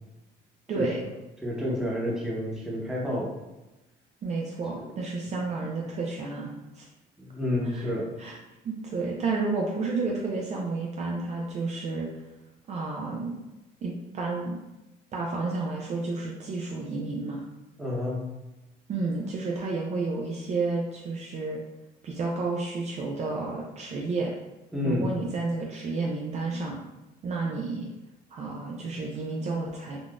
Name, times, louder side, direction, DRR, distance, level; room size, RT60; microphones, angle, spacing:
voice 1, 0.7-1.0 4.2-6.9 7.6-7.9 8.2-8.4 8.6-12.1 12.7-13.3 13.8-14.6 15.1-17.4 18.9-21.6 22.0-24.3 24.8-26.8 27.2-27.9 28.3-30.0, right 3 dB, 40° right, -1 dB, 0.5 m, -31 dB
voice 2, 1.4-3.3 4.8-4.9 7.2-8.1 17.8-18.2 24.7-25.1, left 1 dB, 5° right, -5 dB, 0.9 m, -29 dB
3.7 x 2.4 x 2.4 m, 1.0 s
cardioid pair, 110°, 17 cm